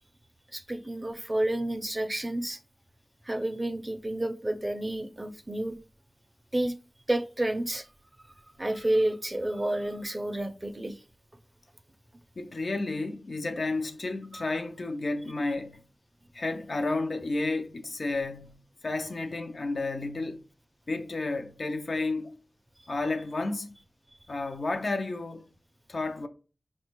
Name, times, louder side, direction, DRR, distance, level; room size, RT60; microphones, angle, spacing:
voice 1, 0.5-2.6 3.3-5.8 6.5-6.7 7.1-7.9 8.6-10.9 14.3-14.4, right 1 dB, 25° right, 0.4 m, -30 dB
voice 2, 12.4-15.8 16.3-20.4 20.9-22.4 22.9-23.7 24.3-25.5 25.9-26.3, left 2 dB, 75° left, 0.4 m, -31 dB
4.9 x 2.2 x 2.9 m
wide cardioid pair, 55°, 0 cm